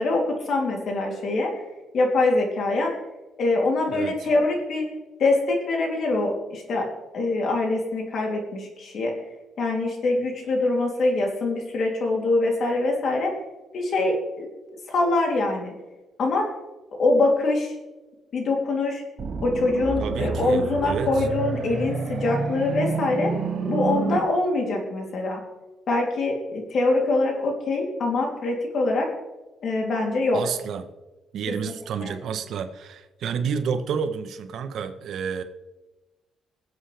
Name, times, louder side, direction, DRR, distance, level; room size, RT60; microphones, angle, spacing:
voice 1, 0.0-1.6 1.9-2.9 3.4-4.9 5.2-6.8 7.1-9.1 9.6-13.3 13.7-14.5 14.9-15.7 16.2-16.5 17.0-17.7 18.3-19.0 19.4-23.3 23.7-25.4 25.9-29.1 29.6-30.4 32.0-32.1, left 2 dB, 55° left, 1 dB, 3.0 m, -24 dB
voice 2, 3.9-4.3 20.0-21.3 30.3-30.8 31.3-35.4, right 6 dB, 65° right, 9 dB, 1.0 m, -30 dB
sound 1, 19.2-24.2, right 4 dB, 45° right, 1.6 m, -29 dB
24.0 x 8.0 x 3.4 m, 1.1 s
cardioid pair, 135°, 0 cm